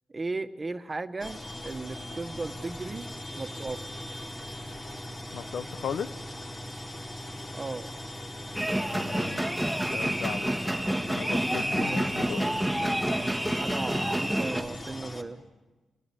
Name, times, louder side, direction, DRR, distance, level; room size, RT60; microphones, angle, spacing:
voice 1, 0.1-3.1 3.4-4.1 7.5-7.9 11.9-12.0 12.4-12.5 13.5-15.5, right 3 dB, 25° right, 1.6 m, -36 dB
sound 1, 1.2-15.2, left 1 dB, 35° left, 4.4 m, -40 dB
voice 2, 5.3-6.1 8.9-9.4 9.9-10.6 11.2-12.6, left 7 dB, 75° left, 0.8 m, -36 dB
sound 2, 8.5-14.6, right 1 dB, 5° left, 2.1 m, -28 dB
29.0 x 18.0 x 8.7 m
cardioid pair, 85°, 0 cm